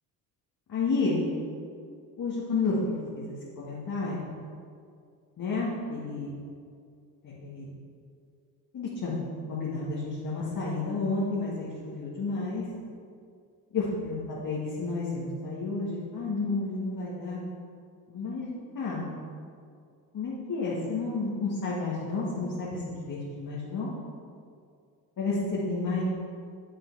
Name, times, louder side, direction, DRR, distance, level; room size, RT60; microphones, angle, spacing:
voice 1, 0.7-1.2 2.2-4.3 5.4-6.3 7.2-7.7 8.7-9.1 9.5-12.6 13.7-17.4 18.1-19.0 20.1-23.9 25.2-26.0, left 3 dB, 45° left, -7 dB, 1.9 m, -31 dB
7.5 x 6.8 x 4.8 m, 2.3 s
hypercardioid pair, 60°, 45 cm